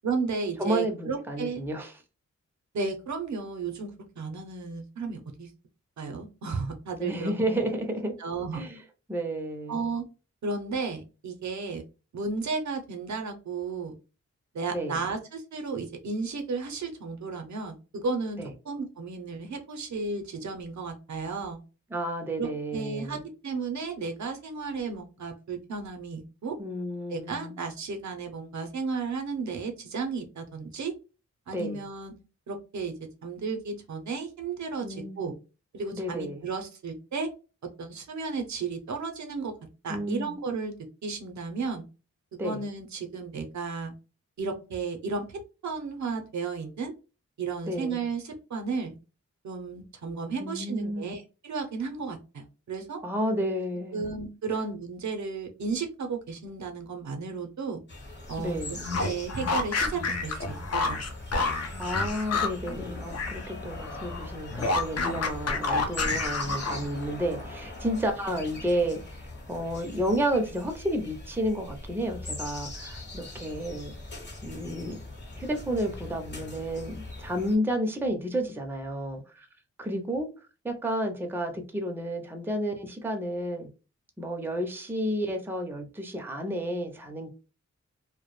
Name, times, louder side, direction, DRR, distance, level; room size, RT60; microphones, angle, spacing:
voice 1, 0.0-1.6 2.7-3.9 4.2-5.5 6.0-7.3 8.2-8.6 9.7-10.1 10.4-11.8 12.1-14.0 14.5-21.6 22.4-26.6 27.1-30.9 31.5-32.1 32.5-32.9 33.2-35.3 35.7-37.3 37.8-39.5 39.8-40.7 41.0-41.8 42.4-43.9 44.4-46.9 47.4-48.9 49.4-53.0 53.9-57.8 58.3-61.0, right 4 dB, 75° right, 0.5 m, -33 dB
voice 2, 0.6-1.9 7.0-8.2 8.5-8.8 9.1-9.9 14.7-15.0 18.4-18.5 21.9-23.2 26.6-27.6 31.5-31.8 34.8-35.3 35.9-36.5 39.9-40.4 42.4-42.6 47.6-48.1 50.4-51.1 53.0-54.1 58.4-58.8 61.8-69.2 69.5-73.9 74.4-75.0 75.4-79.5 79.8-80.3 80.6-83.7 84.2-87.3, equal, 10° right, 0.4 m, -31 dB
sound 1, 57.9-77.6, left 2 dB, 40° left, 0.9 m, -41 dB
sound 2, 58.7-63.5 63.7-67.0, left 3 dB, 60° left, 0.5 m, -29 dB
2.2 x 2.0 x 2.9 m
wide cardioid pair, 85°, 29 cm